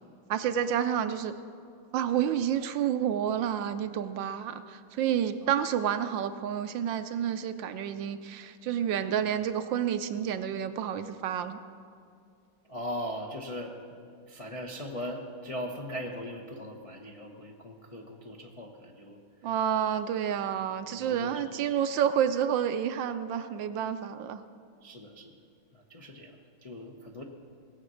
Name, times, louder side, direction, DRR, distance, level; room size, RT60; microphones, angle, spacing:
voice 1, 0.3-1.3 1.9-11.6 19.4-24.4, right 9 dB, 75° right, 10 dB, 1.2 m, -29 dB
voice 2, 12.7-13.7 14.3-19.2 20.8-21.5 24.8-25.3 25.7-27.2, equal, 65° left, 0 dB, 0.3 m, -39 dB
19.0 x 8.1 x 6.2 m, 2.3 s
omnidirectional pair, 2.3 m